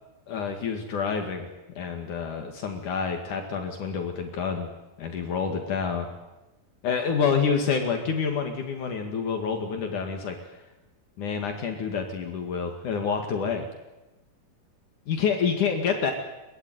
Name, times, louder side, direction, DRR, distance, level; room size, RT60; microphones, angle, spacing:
voice 1, 0.3-1.5 1.8-4.7 5.0-6.1 6.8-10.4 11.2-13.7 15.1-16.1, left 6 dB, 65° left, 4 dB, 3.4 m, -28 dB
22.5 x 20.0 x 9.4 m, 1.0 s
omnidirectional pair, 4.0 m